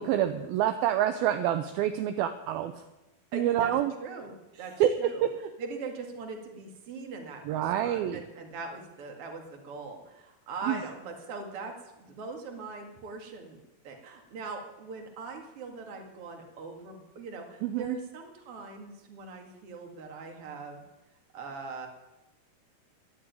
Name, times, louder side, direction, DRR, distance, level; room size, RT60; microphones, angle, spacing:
voice 1, 0.0-2.7 3.3-3.9 4.8-4.9 7.5-8.2 10.7-10.8 17.6-18.0, right 11 dB, 80° right, 8 dB, 2.3 m, -27 dB
voice 2, 3.3-5.3 5.6-20.8 21.3-21.9, right 4 dB, 40° right, 2 dB, 2.5 m, -41 dB
11.5 x 9.6 x 9.4 m, 0.99 s
omnidirectional pair, 4.7 m